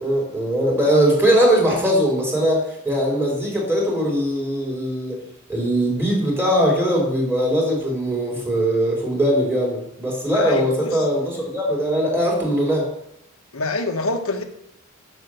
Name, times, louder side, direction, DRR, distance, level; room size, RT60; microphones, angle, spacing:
voice 1, 0.0-5.2 5.5-12.9, equal, 10° right, -1 dB, 3.9 m, -20 dB
voice 2, 10.3-11.1 13.5-14.4, left 2 dB, 75° left, 6 dB, 1.4 m, -26 dB
9.1 x 7.0 x 6.5 m, 0.79 s
head